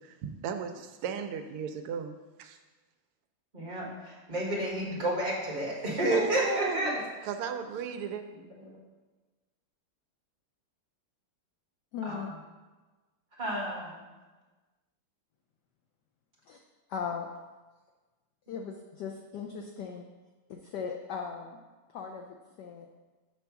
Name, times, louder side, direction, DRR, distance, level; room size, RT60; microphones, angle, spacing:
voice 1, 0.0-2.6 6.1-7.0 7.2-8.2, right 7 dB, 85° right, 7 dB, 1.5 m, -36 dB
voice 2, 3.5-7.0 8.6-8.8 12.0-12.2 13.4-14.0, right 1 dB, 25° right, -4 dB, 1.5 m, -31 dB
voice 3, 11.9-12.3 16.5-16.6 16.9-17.3 18.5-20.1 20.5-21.6 21.9-22.9, left 6 dB, 85° left, 2 dB, 0.9 m, -38 dB
7.0 x 3.4 x 5.8 m, 1.3 s
omnidirectional pair, 2.4 m